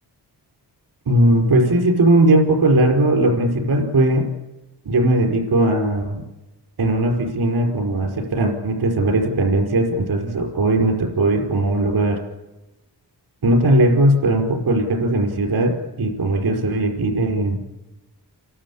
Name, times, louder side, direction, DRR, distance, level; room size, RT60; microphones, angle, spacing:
voice 1, 1.1-4.3 4.8-6.2 6.8-12.2 13.4-17.6, right 1 dB, 65° right, 2 dB, 5.0 m, -18 dB
29.5 x 12.5 x 8.6 m, 1.1 s
wide cardioid pair, 125°, 40 cm